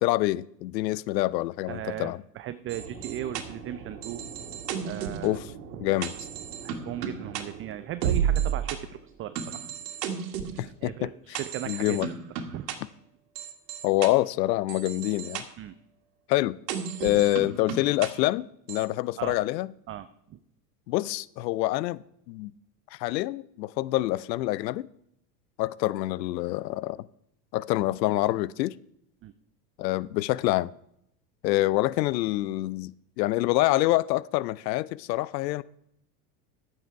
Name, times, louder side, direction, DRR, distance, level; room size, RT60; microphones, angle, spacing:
voice 1, 0.0-2.2 5.2-5.5 5.8-6.1 10.6-11.4 11.7-12.1 13.8-15.4 16.3-16.6 17.0-19.7 20.9-22.0 22.3-22.5 22.9-24.9 25.6-27.0 27.5-28.7 29.8-30.7 31.4-32.9 33.2-35.6, left 17 dB, 85° left, 0.6 m, -26 dB
voice 2, 1.7-4.2 4.8-5.4 5.7-5.9 6.6-9.6 10.5-12.7 15.6-15.7 19.2-19.4 19.9-20.4 29.2-29.3, right 12 dB, 25° right, 0.5 m, -37 dB
sound 1, 2.7-8.8 9.4-10.6 11.3-12.8 13.4-14.1 14.7-15.4 16.7-18.1 18.7-18.9, right 8 dB, 75° right, 2.0 m, -33 dB
12.5 x 9.0 x 4.7 m
hypercardioid pair, 105°, 49 cm